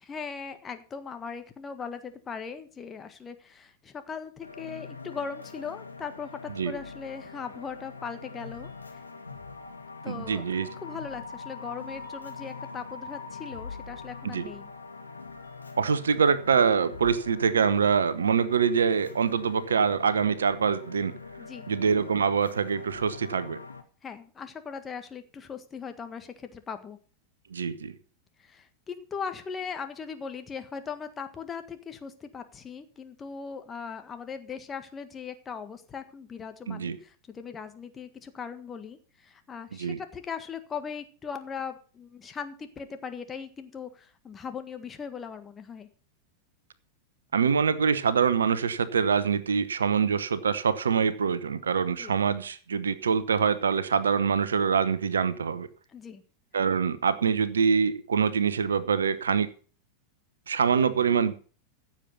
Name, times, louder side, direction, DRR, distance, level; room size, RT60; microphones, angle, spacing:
voice 1, 0.0-8.7 10.0-14.7 21.4-21.7 24.0-27.0 28.4-45.9 52.0-52.1 55.9-56.2, left 6 dB, 20° left, 1.6 m, -39 dB
sound 1, 4.4-23.8, left 4 dB, 80° left, 1.8 m, -43 dB
voice 2, 10.1-10.7 14.2-14.5 15.8-21.1 21.7-23.6 27.5-27.9 36.7-37.0 39.8-40.0 47.3-55.7 56.5-59.5 60.5-61.3, right 6 dB, 70° right, 1.0 m, -25 dB
15.0 x 7.5 x 5.7 m
figure-of-eight pair, 90°, 0 cm